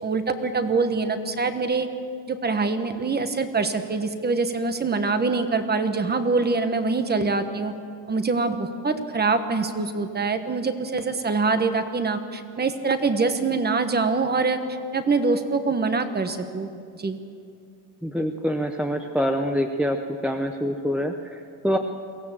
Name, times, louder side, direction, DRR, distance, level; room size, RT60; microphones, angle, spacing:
voice 1, 0.0-1.9 2.3-7.7 8.1-14.6 14.9-16.7 17.0-17.2, right 4 dB, 20° right, 9 dB, 1.2 m, -24 dB
voice 2, 18.0-20.0 20.2-21.8, equal, 5° right, 4 dB, 0.7 m, -25 dB
23.0 x 16.0 x 7.3 m, 2.4 s
cardioid pair, 140°, 48 cm